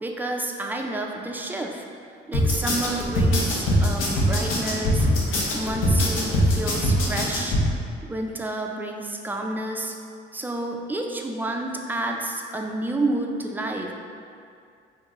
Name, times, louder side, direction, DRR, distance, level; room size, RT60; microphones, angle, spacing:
voice 1, 0.0-1.9 2.3-5.1 5.5-7.6 8.0-9.9 10.3-13.9, right 2 dB, 10° right, 2 dB, 0.3 m, -30 dB
sound 1, 2.3-7.6, equal, 85° left, 0.7 m, -22 dB
2.9 x 2.6 x 3.6 m, 2.3 s
cardioid pair, 90°, 20 cm